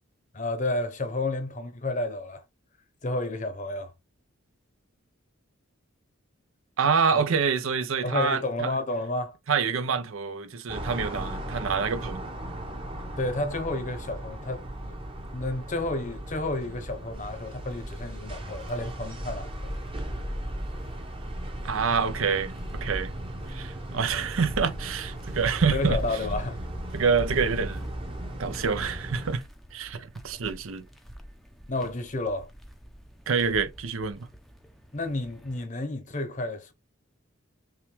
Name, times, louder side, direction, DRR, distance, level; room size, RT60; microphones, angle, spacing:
voice 1, 0.3-2.4 3.0-3.9 7.1-7.3 8.0-9.4 13.2-15.0 15.3-19.5 25.7-26.6 31.7-32.5 34.9-36.7, left 2 dB, 35° left, 0.8 m, -31 dB
voice 2, 6.8-8.7 9.5-12.2 21.7-22.5 22.8-23.1 23.5-26.0 26.9-27.9 28.4-29.4 29.7-30.8 33.3-34.3, right 5 dB, 75° right, 0.6 m, -26 dB
sound 1, 10.7-29.4, right 1 dB, 25° right, 0.8 m, -37 dB
sound 2, 17.1-35.7, equal, ahead, 0.5 m, -41 dB
5.8 x 2.3 x 3.2 m
head